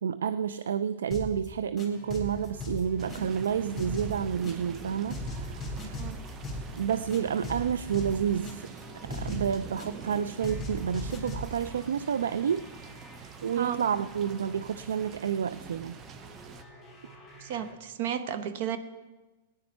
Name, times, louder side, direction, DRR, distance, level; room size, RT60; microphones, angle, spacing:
voice 1, 0.0-6.0 6.8-8.7 9.0-12.6 13.4-16.0, right 8 dB, 80° right, 13 dB, 0.3 m, -30 dB
sound 1, 1.1-1.5 1.8-3.5 3.8-4.8 5.1-6.8 7.1-8.8 9.1-10.1 10.4-11.6, left 1 dB, 10° left, 3.2 m, -38 dB
sound 2, 1.8-17.7, right 1 dB, 10° right, 3.8 m, -51 dB
sound 3, 3.0-16.6, right 6 dB, 30° right, 0.7 m, -45 dB
voice 2, 17.4-18.8, right 9 dB, 60° right, 12 dB, 0.9 m, -33 dB
17.0 x 9.6 x 4.3 m, 1.2 s
hypercardioid pair, 120°, 0 cm